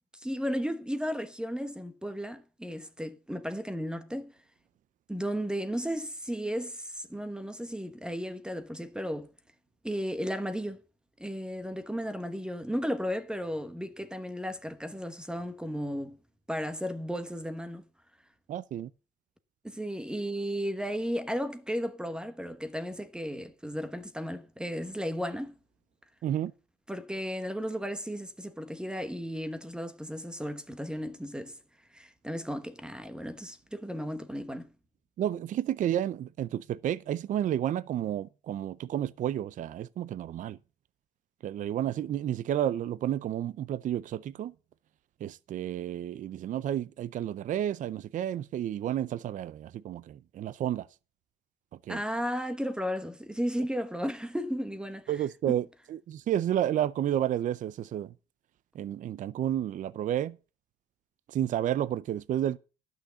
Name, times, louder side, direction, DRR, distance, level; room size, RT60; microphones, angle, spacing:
voice 1, 0.2-4.3 5.1-9.3 9.8-10.8 11.2-16.2 16.5-17.8 19.6-25.6 26.9-31.6 31.9-34.7 51.9-55.1 55.5-55.6, equal, 5° right, 1.1 m, -34 dB
voice 2, 18.5-18.9 26.2-26.5 35.2-40.6 41.4-44.5 45.2-50.9 51.9-52.0 55.1-58.1 58.7-60.4 61.3-62.6, right 11 dB, 50° right, 0.5 m, -31 dB
11.5 x 6.5 x 6.8 m
cardioid pair, 110°, 17 cm